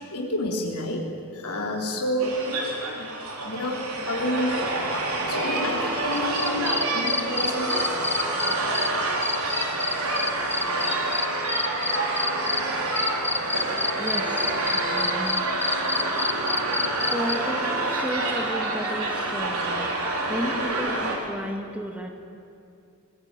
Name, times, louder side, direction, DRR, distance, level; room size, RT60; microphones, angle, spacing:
voice 1, 0.1-1.0 1.3-3.1 3.4-4.7 5.3-8.0 13.4-13.8 16.7-17.1, left 1 dB, 80° left, -1 dB, 3.5 m, -30 dB
sound 1, 2.2-21.2, right 2 dB, 70° right, 4.0 m, -27 dB
sound 2, 6.1-8.9 9.2-12.6 12.9-17.4, left 3 dB, 10° left, 0.7 m, -27 dB
voice 2, 13.7-15.5 16.7-22.1, equal, 5° right, 3 dB, 2.2 m, -34 dB
22.0 x 19.5 x 9.1 m, 2.6 s
head